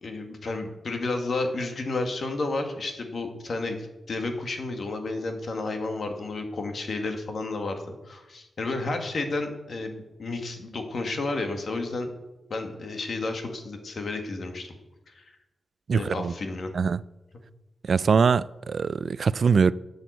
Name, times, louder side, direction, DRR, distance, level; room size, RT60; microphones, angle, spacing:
voice 1, 0.0-12.1 12.5-14.7 15.1-15.2 15.9-16.7, left 3 dB, 55° left, 2.0 m, -31 dB
voice 2, 15.9-16.3 16.7-17.0 17.9-19.7, right 5 dB, 60° right, 0.4 m, -22 dB
11.5 x 7.9 x 8.1 m
wide cardioid pair, 110°, 0 cm